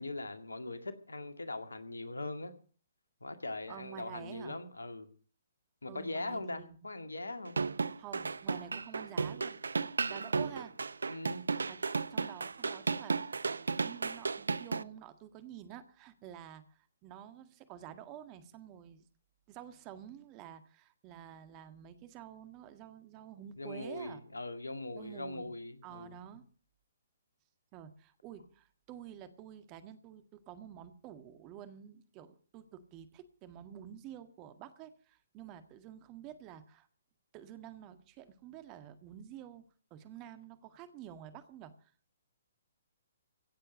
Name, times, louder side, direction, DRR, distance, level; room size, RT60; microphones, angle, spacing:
voice 1, 0.0-2.5 3.2-5.1 5.8-7.6 11.1-11.4 23.6-26.1, left 2 dB, 75° left, 9 dB, 2.1 m, -41 dB
voice 2, 3.7-4.6 5.8-6.8 8.0-9.6 10.0-10.7 11.6-11.8 12.1-19.0 19.5-24.2 24.9-25.5 25.8-26.4 27.7-36.9 37.3-39.6 39.9-41.9, right 10 dB, 25° right, 10 dB, 1.8 m, -49 dB
sound 1, 7.5-14.8, right 4 dB, 70° right, 0.6 m, -34 dB
16.5 x 7.8 x 8.2 m, 0.41 s
figure-of-eight pair, 125°, 0 cm